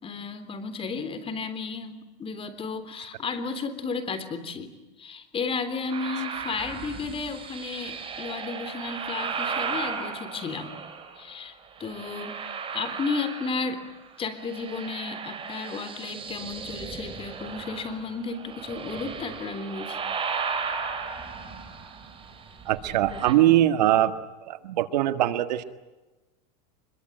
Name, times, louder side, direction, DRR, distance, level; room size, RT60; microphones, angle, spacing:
voice 1, 0.0-10.8 11.2-13.8 14.2-20.0, left 4 dB, 25° left, 11 dB, 3.5 m, -33 dB
sound 1, 5.9-11.2 11.8-14.0 14.2-23.3, right 5 dB, 25° right, 4.8 m, -35 dB
voice 2, 22.7-24.1 24.5-25.6, right 13 dB, 85° right, 11 dB, 1.8 m, -22 dB
25.0 x 22.5 x 9.1 m, 1.1 s
supercardioid pair, 125°, 21 cm